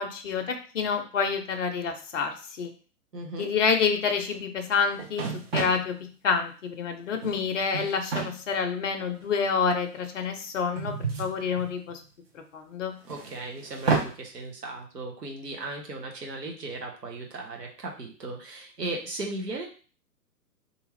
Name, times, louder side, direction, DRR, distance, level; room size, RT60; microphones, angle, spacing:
voice 1, 0.0-2.7 3.4-5.9 6.2-12.0 12.5-12.9, left 5 dB, 50° left, 5 dB, 0.6 m, -28 dB
voice 2, 3.1-3.5 13.0-19.7, right 2 dB, 75° right, 0 dB, 1.0 m, -37 dB
sound 1, 4.7-4.8 5.0-5.9 7.0-7.4 7.7-8.3 9.2-9.3 10.8-12.0 13.1-14.1, right 4 dB, 40° right, 0.6 m, -30 dB
2.7 x 2.4 x 3.1 m, 0.38 s
figure-of-eight pair, 125°, 49 cm